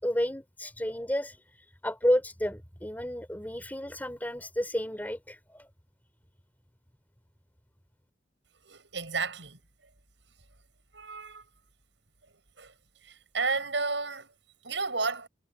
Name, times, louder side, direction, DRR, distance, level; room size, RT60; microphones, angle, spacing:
voice 1, 0.0-5.7, equal, 10° left, 3.7 m, -31 dB
voice 2, 8.6-9.6 10.9-11.4 12.6-12.7 13.0-14.3 14.6-15.3, right 4 dB, 75° right, 7.4 m, -32 dB
head